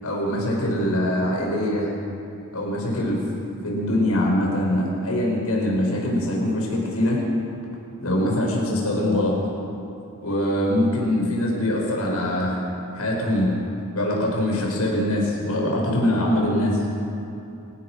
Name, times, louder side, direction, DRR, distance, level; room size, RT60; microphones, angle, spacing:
voice 1, 0.0-1.9 2.5-3.2 3.6-7.2 8.0-9.4 10.2-12.6 12.9-13.5 13.9-16.9, left 1 dB, 80° left, -1 dB, 6.2 m, -23 dB
27.5 x 16.0 x 6.4 m, 2.8 s
head